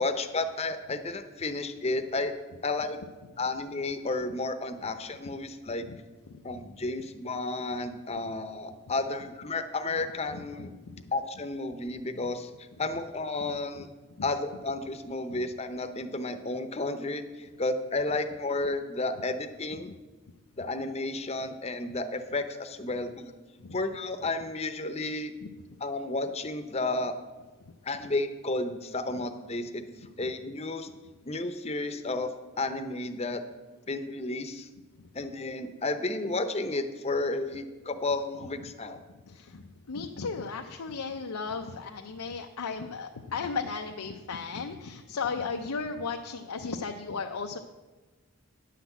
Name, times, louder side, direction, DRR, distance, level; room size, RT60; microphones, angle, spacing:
voice 1, 0.0-2.3 2.6-3.0 3.4-5.9 6.4-10.7 11.1-12.5 12.8-13.9 14.2-19.9 20.6-23.3 23.7-25.3 25.8-27.2 27.8-29.9 30.2-30.9 31.2-32.3 32.6-33.4 33.9-34.7 35.1-39.0, left 2 dB, 30° left, 8 dB, 0.7 m, -32 dB
voice 2, 6.3-6.6 10.3-10.9 13.7-13.8 15.3-15.4 23.6-23.8 25.4-25.5 30.2-30.3 39.3-47.6, left 4 dB, 90° left, 3 dB, 0.6 m, -36 dB
10.0 x 5.9 x 8.2 m, 1.3 s
head